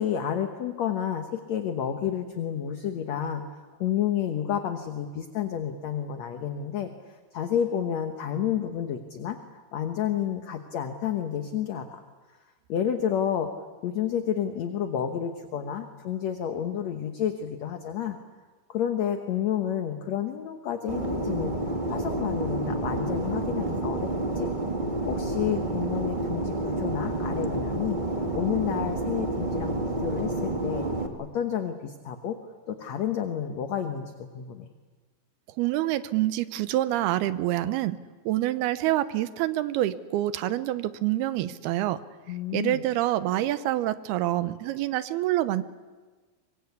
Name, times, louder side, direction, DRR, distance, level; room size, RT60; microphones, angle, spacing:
voice 1, 0.0-3.5 3.8-6.9 7.3-9.4 9.7-12.0 12.7-13.5 13.8-18.2 18.7-21.5 21.9-24.1 24.4-24.5 25.1-28.0 28.3-30.9 31.2-32.4 32.7-34.7 42.3-42.9, left 9 dB, 60° left, 6 dB, 2.0 m, -30 dB
Fixed-wing aircraft airplane, 20.9-31.1, right 2 dB, 25° right, 1.0 m, -29 dB
voice 2, 35.6-38.0 38.3-42.0 42.5-45.6, right 14 dB, 90° right, 13 dB, 2.9 m, -26 dB
24.5 x 24.0 x 8.4 m, 1.4 s
omnidirectional pair, 4.4 m